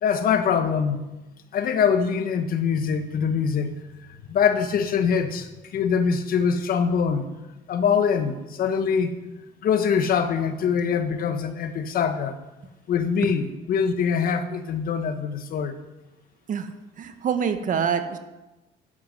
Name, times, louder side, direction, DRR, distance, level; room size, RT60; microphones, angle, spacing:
voice 1, 0.0-1.0 1.5-3.8 4.3-7.2 7.7-9.3 9.6-12.3 12.9-15.8, left 6 dB, 60° left, 8 dB, 1.8 m, -23 dB
voice 2, 17.0-18.2, right 7 dB, 50° right, 8 dB, 1.9 m, -25 dB
12.0 x 11.5 x 9.2 m, 1.0 s
cardioid pair, 110°, 17 cm